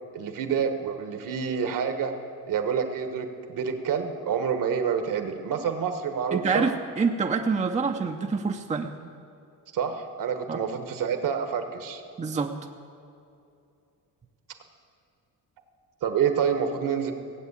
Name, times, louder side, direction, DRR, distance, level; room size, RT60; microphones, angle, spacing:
voice 1, 0.1-2.1 2.5-6.7 9.7-12.0 16.0-17.1, right 7 dB, 60° right, 7 dB, 1.5 m, -28 dB
voice 2, 6.3-6.7 7.0-8.9 10.5-10.6 12.2-12.5, right 5 dB, 20° right, 4 dB, 0.7 m, -26 dB
17.0 x 8.2 x 8.2 m, 2.7 s
cardioid pair, 125°, 36 cm